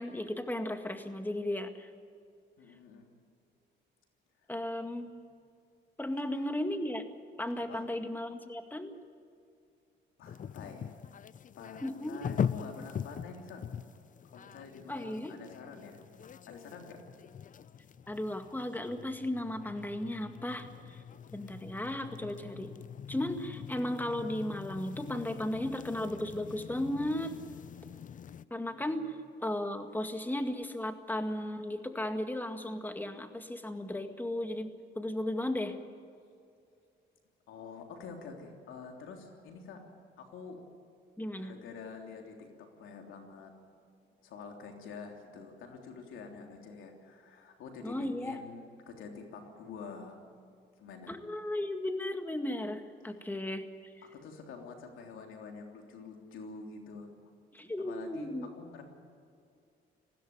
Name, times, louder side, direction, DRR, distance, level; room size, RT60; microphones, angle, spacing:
voice 1, 0.0-1.9 4.5-5.1 6.0-7.1 7.4-8.9 11.8-12.2 14.9-15.4 18.1-21.0 21.3-22.7 23.1-27.4 28.5-34.7 35.0-35.8 41.2-41.5 47.8-48.4 51.1-53.7 57.5-58.5, left 1 dB, 10° left, 7 dB, 1.9 m, -35 dB
voice 2, 2.6-3.1 5.0-5.1 6.0-6.5 7.6-7.9 10.2-10.9 11.5-13.6 14.2-16.0 16.5-17.0 28.6-29.0 37.5-39.8 40.2-40.6 41.4-43.5 44.2-50.2 50.8-51.1 54.0-57.1 57.8-58.8, left 5 dB, 85° left, 2 dB, 3.3 m, -47 dB
sound 1, 10.2-28.5, left 8 dB, 40° left, 0.6 m, -42 dB
20.0 x 15.5 x 9.5 m, 2.4 s
cardioid pair, 90°, 20 cm